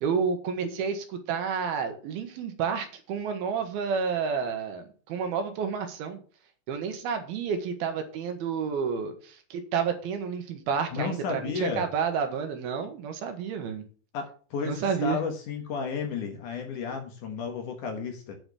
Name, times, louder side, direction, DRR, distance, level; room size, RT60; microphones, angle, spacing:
voice 1, 0.0-6.2 6.7-13.8 14.6-15.2, right 6 dB, 75° right, 6 dB, 3.0 m, -30 dB
voice 2, 10.9-11.8 14.1-18.4, left 5 dB, 60° left, 3 dB, 2.5 m, -32 dB
9.3 x 4.9 x 6.8 m, 0.41 s
omnidirectional pair, 4.6 m